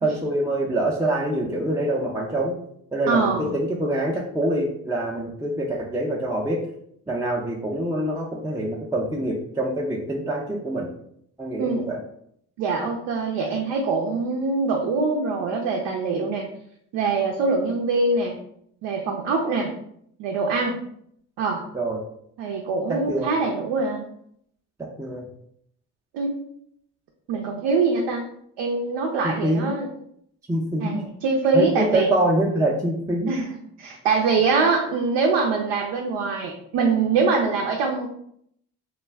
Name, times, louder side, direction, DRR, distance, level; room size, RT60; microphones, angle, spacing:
voice 1, 0.0-2.6 2.9-6.6 7.1-10.9 11.4-12.0 21.7-22.0 23.1-23.3 24.8-25.3 29.2-29.7 30.5-31.0 31.5-33.3, right 1 dB, 10° right, -3 dB, 0.4 m, -25 dB
voice 2, 3.1-3.5 11.6-11.9 12.6-16.5 16.9-18.3 18.8-19.7 20.2-20.8 21.4-21.6 22.4-24.1 26.1-26.3 27.3-28.2 28.6-29.9 30.8-32.1 33.3-33.5 33.8-38.1, right 4 dB, 75° right, 1 dB, 0.5 m, -23 dB
2.2 x 2.2 x 3.3 m, 0.70 s
hypercardioid pair, 45°, 42 cm